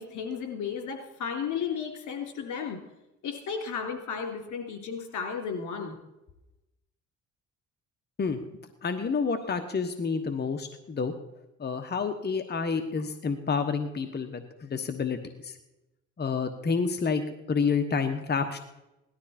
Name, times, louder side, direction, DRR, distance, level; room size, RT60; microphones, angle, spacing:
voice 1, 0.0-2.8 3.2-5.9, left 6 dB, 75° left, 3 dB, 3.3 m, -34 dB
voice 2, 8.8-11.1 11.6-15.5 16.2-17.2 17.5-18.6, left 5 dB, 35° left, 7 dB, 1.2 m, -29 dB
17.5 x 12.5 x 4.3 m, 0.96 s
cardioid pair, 90°, 30 cm